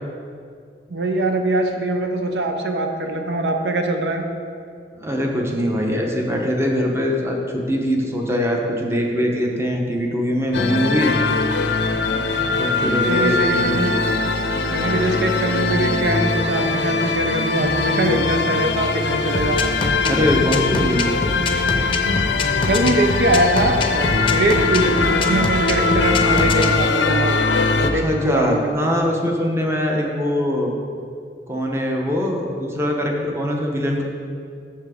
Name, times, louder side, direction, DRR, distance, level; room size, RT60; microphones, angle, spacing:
voice 1, 0.9-4.2 13.1-13.9 14.7-19.6 22.7-27.5 27.9-28.7, right 1 dB, 75° right, 4 dB, 0.7 m, -22 dB
voice 2, 5.0-11.1 12.4-13.3 20.0-21.1 27.8-30.7 31.5-34.0, equal, 15° right, 0 dB, 0.9 m, -22 dB
sound 1, 10.5-27.9, left 3 dB, 85° left, 0.6 m, -21 dB
sound 2, 19.3-26.7, left 3 dB, 30° left, 0.6 m, -25 dB
7.2 x 6.9 x 4.9 m, 2.3 s
head